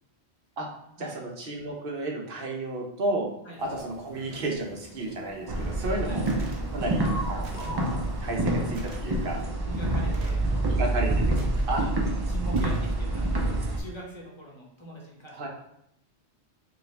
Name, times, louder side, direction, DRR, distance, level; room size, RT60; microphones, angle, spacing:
voice 1, 1.0-3.3 3.6-6.2 6.7-7.8 8.2-9.4 10.7-11.1 11.7-11.8 15.3-15.5, right 2 dB, 60° right, 0 dB, 1.0 m, -32 dB
sound 1, 3.6-9.5, equal, 65° left, 0.7 m, -44 dB
sound 2, 5.5-13.8, right 2 dB, 40° right, 0.3 m, -27 dB
sound 3, 6.3-6.7 7.4-7.8 8.7-9.0 10.1-10.5 11.3-11.9 12.5-13.0, right 3 dB, 85° right, 1.0 m, -48 dB
voice 2, 9.1-10.8 11.1-11.9 12.3-15.5, right 1 dB, 25° left, -3 dB, 0.9 m, -43 dB
5.1 x 2.4 x 3.3 m, 0.76 s
omnidirectional pair, 1.1 m